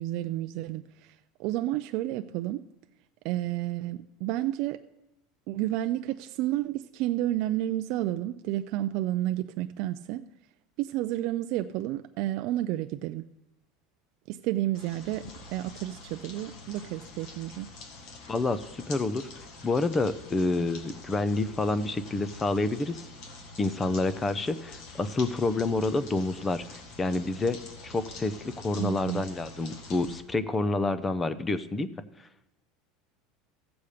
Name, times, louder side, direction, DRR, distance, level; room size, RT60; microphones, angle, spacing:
voice 1, 0.0-2.6 3.2-4.8 5.5-10.3 10.8-13.3 14.3-17.7 28.8-29.2, right 14 dB, 55° right, 0.3 m, -31 dB
sound 1, 14.7-30.2, left 3 dB, 55° left, 1.8 m, -46 dB
voice 2, 18.3-19.3 19.6-23.0 23.6-31.9, left 3 dB, 15° left, 0.5 m, -28 dB
15.0 x 6.9 x 5.0 m
supercardioid pair, 150°, 0 cm